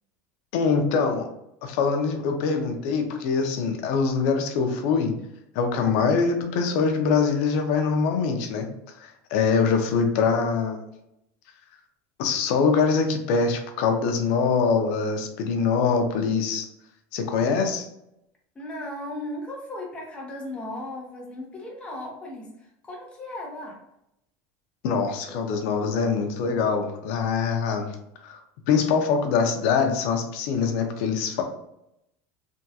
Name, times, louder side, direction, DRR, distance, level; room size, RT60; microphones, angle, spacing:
voice 1, 0.5-1.3 1.6-5.1 5.5-8.7 9.0-10.8 12.2-16.7 17.1-17.9 24.8-27.9 28.2-28.4 28.7-31.4, left 5 dB, 60° left, 5 dB, 0.6 m, -23 dB
voice 2, 18.5-23.8, left 1 dB, 15° left, -2 dB, 0.8 m, -36 dB
3.5 x 2.3 x 2.8 m, 0.81 s
cardioid pair, 165°, 8 cm